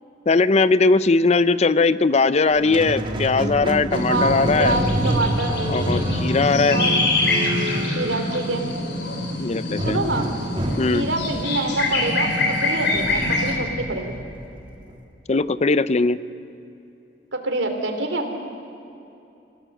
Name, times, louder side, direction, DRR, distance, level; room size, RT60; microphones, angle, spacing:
voice 1, 0.3-4.8 5.7-6.8 9.4-10.0 10.8-11.1 15.3-16.2, left 3 dB, 35° left, 15 dB, 0.5 m, -19 dB
Squeak, 2.5-8.8 9.8-14.9, right 1 dB, 25° right, 1.9 m, -28 dB
sound 1, 3.9-13.5, left 2 dB, 65° left, 3.5 m, -25 dB
voice 2, 4.1-5.6 6.7-7.0 7.9-8.7 9.8-10.3 10.9-14.2 17.3-18.3, right 2 dB, 90° right, 5 dB, 2.9 m, -26 dB
26.5 x 16.0 x 7.8 m, 2.8 s
head